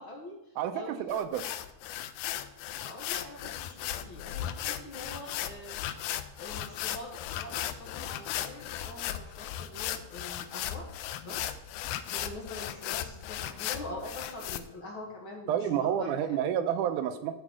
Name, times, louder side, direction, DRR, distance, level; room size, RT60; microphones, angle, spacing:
voice 1, 0.0-1.2 1.4-1.5 2.7-6.1 6.4-10.9 11.2-11.5 12.1-16.4, left 2 dB, 45° left, -1 dB, 2.0 m, -44 dB
voice 2, 0.6-1.6 15.5-17.3, right 9 dB, 85° right, 9 dB, 2.1 m, -30 dB
sound 1, 1.1-14.6, left 12 dB, 90° left, 2.2 m, -36 dB
11.5 x 4.5 x 6.2 m, 0.86 s
omnidirectional pair, 3.7 m